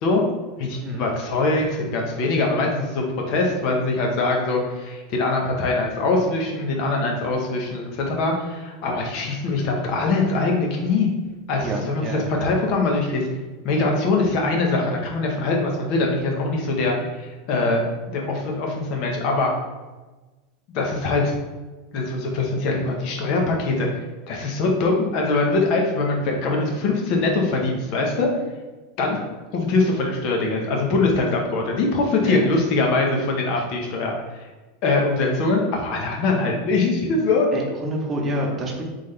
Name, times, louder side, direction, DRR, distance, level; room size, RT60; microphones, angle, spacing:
voice 1, 0.6-11.1 11.5-13.3 13.6-17.8 18.1-19.5 20.7-21.3 21.9-23.9 24.3-28.3 29.0-29.2 29.5-34.2 34.8-37.5, left 3 dB, 55° left, 1 dB, 1.1 m, -22 dB
voice 2, 11.6-12.4 29.1-29.2 32.2-32.5 37.5-38.8, right 1 dB, 25° right, -1 dB, 1.0 m, -28 dB
3.7 x 3.7 x 3.3 m, 1.2 s
supercardioid pair, 120°, 0 cm